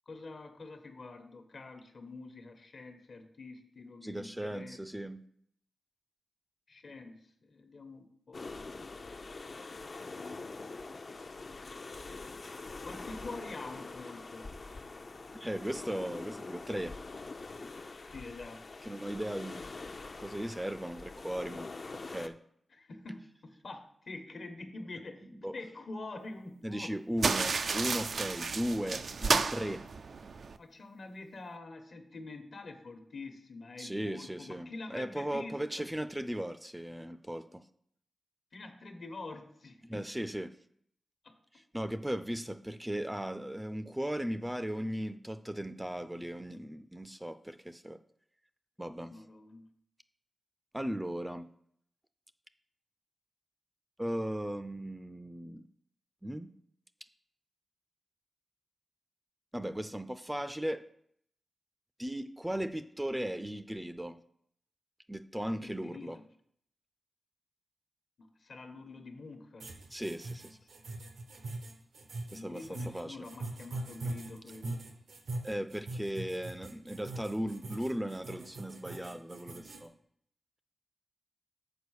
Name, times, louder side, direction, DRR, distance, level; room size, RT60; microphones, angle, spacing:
voice 1, 0.1-4.8 6.7-8.5 10.0-10.9 11.2-12.0 12.8-14.5 18.1-18.7 22.7-25.3 25.5-27.4 30.6-35.9 38.5-40.0 41.2-41.3 49.1-49.7 65.6-66.2 68.2-69.7 72.3-74.8, left 3 dB, 65° left, 6 dB, 1.1 m, -46 dB
voice 2, 4.0-5.2 15.3-17.0 18.8-19.6 20.2-21.7 22.1-22.4 25.3-25.5 26.6-29.8 33.8-37.6 39.8-40.5 41.5-48.0 48.8-49.2 50.7-51.5 54.0-55.6 56.2-56.5 59.5-60.8 62.0-64.2 65.1-66.2 69.9-70.6 72.3-73.3 75.4-79.9, equal, 10° right, 10 dB, 0.4 m, -37 dB
sound 1, 8.3-22.3, left 3 dB, 50° left, 0.6 m, -44 dB
sound 2, 27.2-30.6, right 4 dB, 70° right, 0.4 m, -32 dB
sound 3, 69.6-79.8, right 2 dB, 90° right, 1.1 m, -42 dB
6.8 x 4.6 x 6.4 m, 0.69 s
cardioid pair, 60°, 0 cm